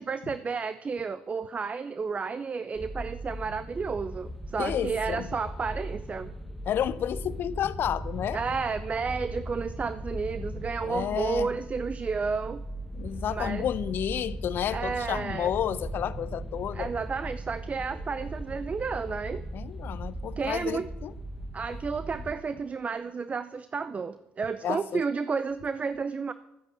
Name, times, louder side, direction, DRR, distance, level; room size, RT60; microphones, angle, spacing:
voice 1, 0.0-6.3 8.3-12.6 13.3-13.7 14.7-15.5 16.7-19.4 20.4-20.9 21.5-26.3, right 5 dB, 35° right, 0.6 m, -31 dB
sound 1, 2.8-22.3, right 1 dB, ahead, 1.3 m, -38 dB
voice 2, 4.6-5.3 6.7-8.4 10.8-11.5 13.0-16.9 19.5-21.1 24.6-25.0, left 10 dB, 60° left, 0.7 m, -31 dB
12.5 x 9.7 x 7.5 m
hypercardioid pair, 60°, 4 cm